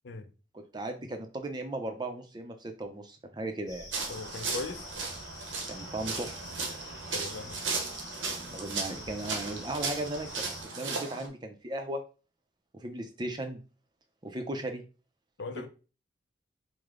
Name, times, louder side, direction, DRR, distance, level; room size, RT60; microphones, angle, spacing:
voice 1, 0.5-3.9 5.7-6.4 8.5-12.0 12.7-13.6 14.2-14.8 15.5-15.7, right 1 dB, 25° right, 0.5 m, -37 dB
sound 1, 3.7-10.6, left 1 dB, 15° left, 1.1 m, -46 dB
sound 2, 3.9-11.3, right 4 dB, 90° right, 0.9 m, -36 dB
voice 2, 4.1-4.9 7.1-7.6 15.4-15.7, left 3 dB, 65° left, 0.5 m, -39 dB
4.9 x 2.1 x 3.6 m
head